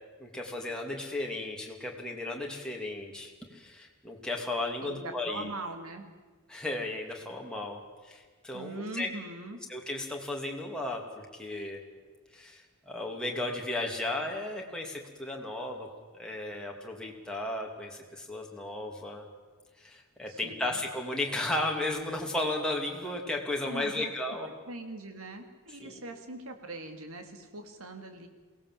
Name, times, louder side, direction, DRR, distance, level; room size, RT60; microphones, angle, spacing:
voice 1, 0.2-5.5 6.5-9.1 9.7-11.8 12.3-15.9 16.1-19.3 19.8-24.5 25.8-26.0, left 2 dB, 5° left, -1 dB, 2.6 m, -35 dB
voice 2, 4.8-6.1 8.5-9.6 20.3-20.8 23.6-24.1 24.7-28.3, right 2 dB, 75° right, 6 dB, 2.5 m, -41 dB
22.5 x 17.5 x 7.6 m, 1.4 s
head